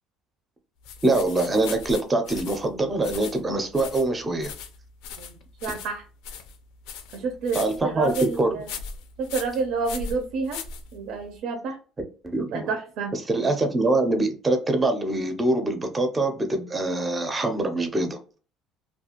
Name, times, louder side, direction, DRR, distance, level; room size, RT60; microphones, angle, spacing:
sound 1, 0.8-11.3, left 6 dB, 90° left, 0.4 m, -39 dB
voice 1, 1.0-4.5 7.5-8.6 12.2-12.7 13.1-18.2, right 2 dB, 15° right, 0.5 m, -24 dB
voice 2, 5.6-6.0 7.1-8.7 9.2-10.6 10.9-11.8 12.5-13.5, right 4 dB, 75° right, 0.5 m, -29 dB
2.4 x 2.3 x 2.8 m
cardioid pair, 145°, 0 cm